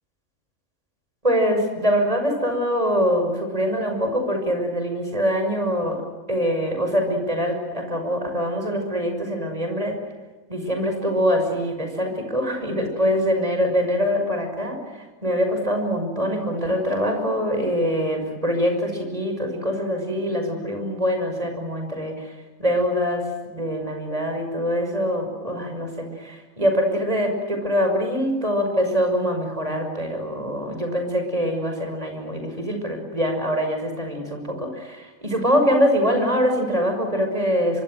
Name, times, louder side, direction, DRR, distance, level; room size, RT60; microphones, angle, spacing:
voice 1, 1.2-6.0 6.3-10.0 10.5-22.3 22.6-23.2 23.5-37.8, equal, 25° right, 4 dB, 6.1 m, -24 dB
25.0 x 25.0 x 7.8 m, 1.2 s
omnidirectional pair, 1.5 m